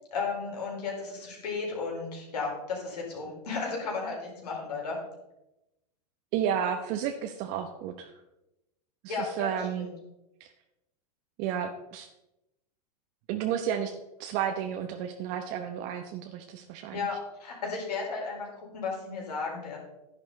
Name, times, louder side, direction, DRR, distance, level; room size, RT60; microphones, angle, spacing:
voice 1, 0.1-5.0 9.1-9.9 16.9-19.8, left 4 dB, 80° left, -2 dB, 4.8 m, -34 dB
voice 2, 6.3-8.1 9.0-9.9 11.4-12.1 13.3-17.0, right 9 dB, 50° right, 5 dB, 1.0 m, -32 dB
11.0 x 10.5 x 4.1 m, 0.93 s
hypercardioid pair, 105°, 20 cm